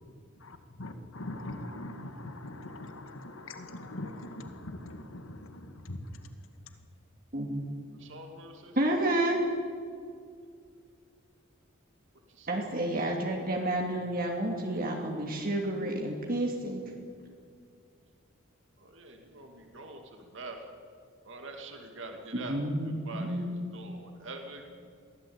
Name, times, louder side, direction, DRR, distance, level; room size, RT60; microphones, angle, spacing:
voice 1, 0.4-6.0, left 1 dB, 75° left, 7 dB, 2.2 m, -42 dB
voice 2, 7.3-7.6 8.8-9.4 12.5-16.8 22.4-23.5, right 1 dB, 45° right, 1 dB, 2.5 m, -30 dB
voice 3, 7.9-8.9 12.3-12.8 18.8-20.8 21.2-22.6 22.8-24.7, right 2 dB, 60° right, 4 dB, 2.5 m, -45 dB
22.5 x 16.5 x 8.8 m, 2.2 s
head